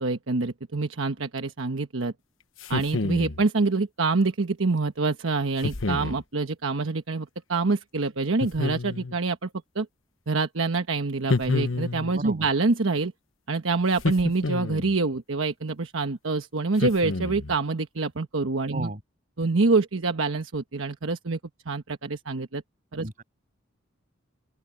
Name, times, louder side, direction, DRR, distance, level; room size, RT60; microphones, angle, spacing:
voice 1, 0.0-2.1 2.7-9.5 9.7-9.9 10.3-13.1 13.5-18.9 19.4-21.4 21.7-22.6 22.9-23.1, right 3 dB, 80° right, 1.2 m, -26 dB
sound 1, 2.6-3.4 5.6-6.2 8.4-9.2 11.3-12.2 14.0-15.0 16.8-17.6, left 3 dB, 75° left, 1.1 m, -28 dB
voice 2, 12.1-12.5 18.7-19.0 23.0-23.2, right 1 dB, 40° right, 7.6 m, -34 dB
open air
head